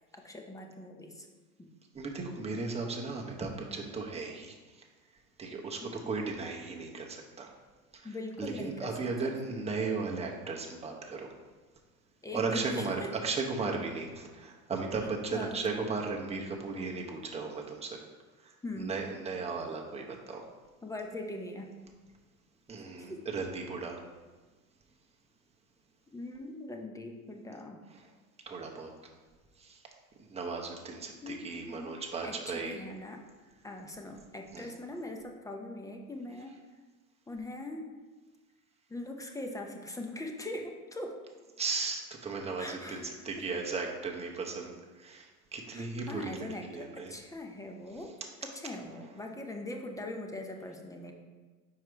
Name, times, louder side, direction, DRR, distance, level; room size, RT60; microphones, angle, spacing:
voice 1, 0.1-1.3 1.6-1.7 5.8-6.0 8.0-8.9 12.2-13.1 15.3-15.6 18.6-19.0 20.8-21.8 23.1-23.3 26.1-27.9 31.2-33.2 33.6-36.6 37.3-37.9 38.9-41.2 42.6-43.1 45.7-48.1 48.4-51.1, left 1 dB, 10° left, 2 dB, 0.5 m, -41 dB
voice 2, 1.9-4.5 5.4-7.5 7.9-8.1 8.4-11.3 12.3-18.0 18.4-18.5 18.8-20.4 22.7-24.0 28.5-28.9 29.6-29.8 30.3-32.8 34.5-34.7 41.6-44.7 45.0-47.1, right 4 dB, 15° right, 0 dB, 0.9 m, -36 dB
4.8 x 4.7 x 4.5 m, 1.3 s
hypercardioid pair, 100°, 46 cm